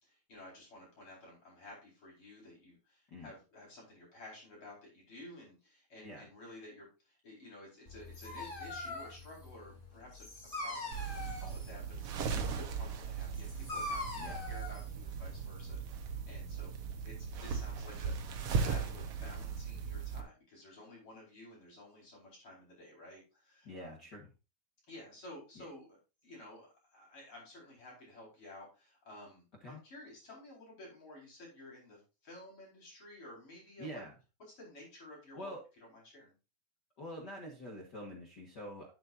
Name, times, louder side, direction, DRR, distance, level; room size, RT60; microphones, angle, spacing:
voice 1, 0.3-10.3 10.5-16.7 17.0-24.0 24.9-34.0 34.6-35.5 35.9-36.3, left 1 dB, 35° left, -3 dB, 5.3 m, -53 dB
Dog, 7.9-15.7, left 2 dB, 15° left, 2.0 m, -43 dB
sound 1, 10.9-20.2, right 6 dB, 70° right, 1.4 m, -38 dB
voice 2, 23.6-24.3 25.5-25.7 29.6-29.8 33.8-34.1 35.3-35.6 37.0-38.9, equal, 50° left, 0 dB, 1.2 m, -46 dB
11.0 x 8.6 x 2.6 m, 0.30 s
omnidirectional pair, 4.3 m